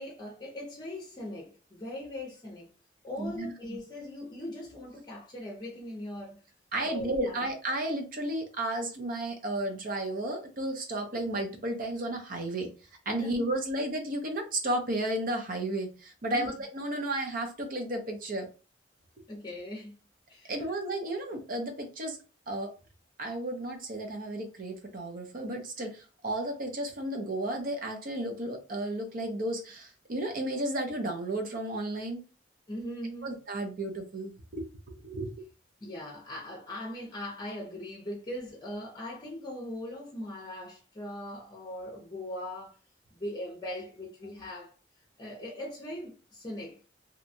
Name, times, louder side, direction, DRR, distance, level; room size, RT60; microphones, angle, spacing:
voice 1, 0.0-2.7 3.0-6.4 6.8-7.3 13.2-13.4 16.3-16.5 19.3-20.0 20.3-20.5 32.7-33.3 35.8-42.8 43.1-44.7 45.2-46.8, left 1 dB, 25° left, 0.7 m, -40 dB
voice 2, 3.2-3.8 6.7-12.7 13.1-18.5 20.5-22.2 22.5-22.7 23.2-32.2 33.2-34.6 35.0-35.3, right 1 dB, 50° right, 0.6 m, -33 dB
2.8 x 2.2 x 2.6 m
head